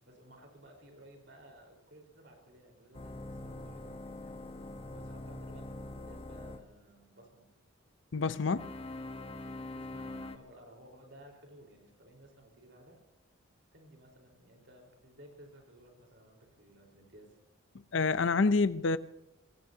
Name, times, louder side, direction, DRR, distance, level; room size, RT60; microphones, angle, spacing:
voice 1, 0.0-4.4 4.9-7.5 8.4-9.3 9.7-13.0 13.7-17.4, right 1 dB, 55° right, 4.3 m, -56 dB
sound 1, 2.9-6.6 8.5-10.4, left 2 dB, 25° left, 1.0 m, -43 dB
voice 2, 8.1-8.6 17.9-19.0, left 4 dB, 65° left, 0.5 m, -27 dB
26.5 x 19.0 x 2.8 m
head